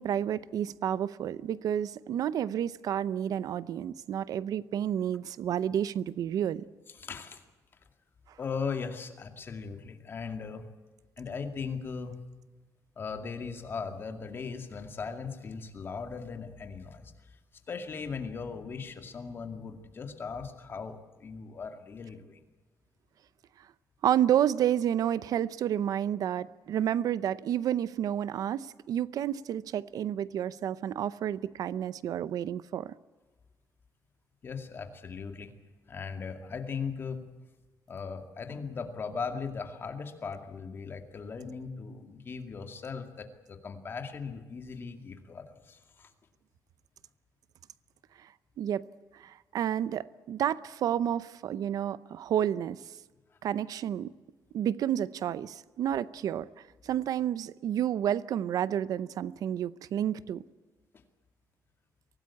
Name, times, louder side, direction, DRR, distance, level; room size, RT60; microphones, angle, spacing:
voice 1, 0.0-6.6 24.0-32.9 48.2-48.3 48.6-48.8 49.1-52.8 53.4-54.1 54.5-56.5 56.8-60.4, right 10 dB, 70° right, 0.7 m, -30 dB
voice 2, 6.9-7.4 8.4-10.7 11.2-12.2 13.0-17.4 17.7-22.4 34.4-35.5 35.9-37.2 37.9-46.1 60.9-61.0, left 5 dB, 35° left, 2.3 m, -38 dB
24.0 x 18.0 x 8.5 m
wide cardioid pair, 170°, 7 cm